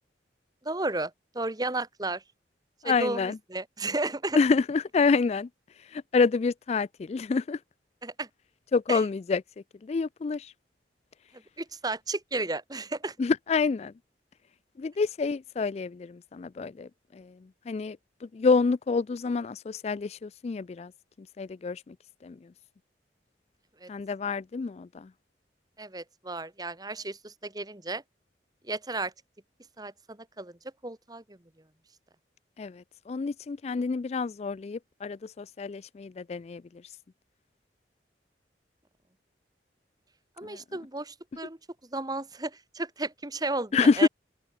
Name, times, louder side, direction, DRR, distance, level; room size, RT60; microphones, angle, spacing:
voice 1, 0.6-2.2 2.8-4.4 8.0-8.3 8.9-9.0 11.3-13.2 23.8-23.9 25.8-28.0 28.6-29.1 29.8-31.4 40.4-44.1, right 2 dB, 20° right, 1.8 m, -33 dB
voice 2, 2.8-3.4 4.3-5.5 5.9-7.6 8.7-9.4 9.8-10.5 13.2-13.9 14.8-17.3 17.7-20.9 21.4-21.9 22.2-22.4 23.9-25.1 32.6-36.6 40.4-40.6 43.7-44.1, left 4 dB, 35° left, 0.3 m, -27 dB
open air
head